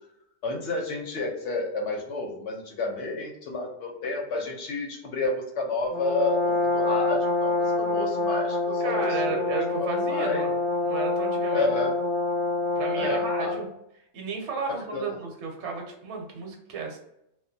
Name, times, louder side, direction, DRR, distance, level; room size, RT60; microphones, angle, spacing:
voice 1, 0.4-10.4 11.5-12.0 12.9-13.6 14.7-15.2, left 3 dB, 70° left, 1 dB, 0.8 m, -31 dB
Brass instrument, 5.9-13.7, left 3 dB, 35° left, 0.6 m, -26 dB
voice 2, 8.8-10.5 10.8-11.7 12.8-13.7 14.1-17.0, right 4 dB, 70° right, 2 dB, 0.9 m, -33 dB
2.3 x 2.1 x 2.6 m, 0.80 s
omnidirectional pair, 1.3 m